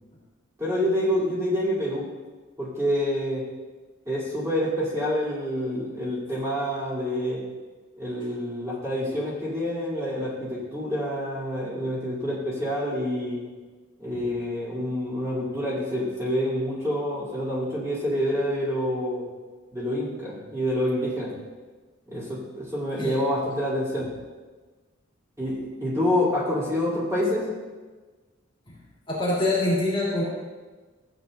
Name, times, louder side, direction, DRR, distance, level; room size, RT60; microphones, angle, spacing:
voice 1, 0.6-2.1 2.6-3.4 4.0-7.4 8.0-13.4 14.0-19.2 19.7-21.3 22.1-24.1 25.4-27.5, equal, 15° right, -8 dB, 3.4 m, -27 dB
voice 2, 29.1-30.2, left 2 dB, 25° left, -7 dB, 2.8 m, -24 dB
16.0 x 9.0 x 2.7 m, 1.3 s
head